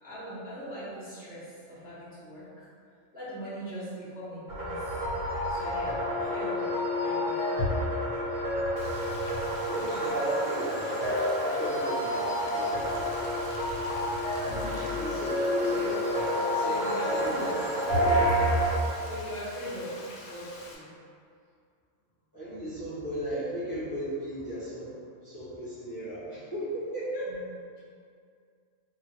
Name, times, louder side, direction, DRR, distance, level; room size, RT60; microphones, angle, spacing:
voice 1, 0.0-2.7 3.1-4.8 5.5-7.9 13.2-13.3 14.6-14.9 15.7-16.0 16.5-17.5 19.0-20.9 27.3-27.4, equal, 10° right, -14 dB, 0.9 m, -40 dB
sound 1, 4.5-18.8, equal, 65° right, 1.3 m, -29 dB
Frying (food), 8.8-20.8, left 2 dB, 85° left, 1.0 m, -46 dB
voice 2, 9.5-13.1 14.0-14.2 15.0-15.9 16.3-18.1 22.3-27.5, right 1 dB, 20° left, -15 dB, 0.9 m, -36 dB
2.8 x 2.4 x 2.8 m, 2.3 s
omnidirectional pair, 1.3 m